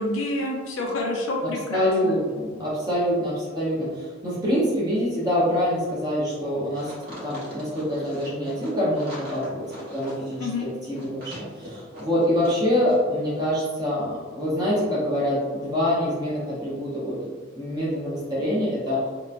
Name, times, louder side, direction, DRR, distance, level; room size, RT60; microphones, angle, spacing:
voice 1, 0.0-2.1 10.4-10.7, left 2 dB, 80° left, 0 dB, 0.4 m, -28 dB
voice 2, 1.7-6.9 7.2-17.2 17.6-19.0, equal, 20° right, -8 dB, 0.7 m, -25 dB
sound 1, 6.7-12.6 12.9-13.0, equal, 45° right, 1.0 m, -41 dB
2.9 x 2.2 x 2.4 m, 1.4 s
head